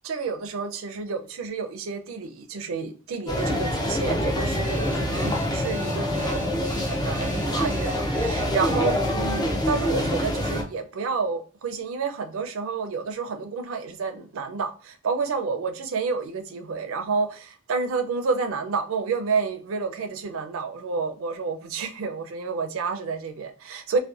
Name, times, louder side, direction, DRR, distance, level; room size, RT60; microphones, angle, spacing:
voice 1, 0.0-24.0, right 4 dB, 70° right, 0.4 m, -30 dB
sound 1, 3.3-10.6, left 1 dB, 20° left, 0.4 m, -26 dB
Alarm, 4.6-8.5, right 2 dB, 10° right, 0.8 m, -44 dB
2.6 x 2.1 x 2.3 m
head